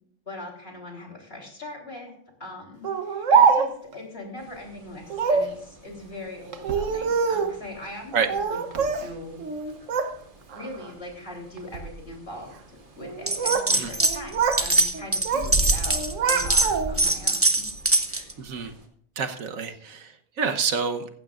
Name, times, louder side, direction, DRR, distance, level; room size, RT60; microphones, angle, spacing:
voice 1, 0.3-2.1 2.4-9.4 10.5-16.0 16.3-17.6 18.1-18.3, left 1 dB, 45° left, 0 dB, 3.9 m, -40 dB
Speech, 2.8-3.9 5.1-5.5 6.5-7.6 8.3-9.1 9.4-10.1 10.5-10.9 11.6-11.9 13.0-13.7 14.0-14.7 14.9-15.5 15.9-17.1, right 6 dB, 70° right, 1.3 m, -24 dB
Thunder Frogs Dog, 4.4-18.9, right 1 dB, 40° right, 2.2 m, -39 dB
sound 1, 13.3-14.2 14.4-18.3, right 2 dB, 10° right, 0.8 m, -23 dB
voice 2, 18.4-18.7 19.2-20.1 20.4-21.0, right 6 dB, 85° right, 6 dB, 1.5 m, -27 dB
16.0 x 14.5 x 2.5 m, 0.64 s
omnidirectional pair, 1.4 m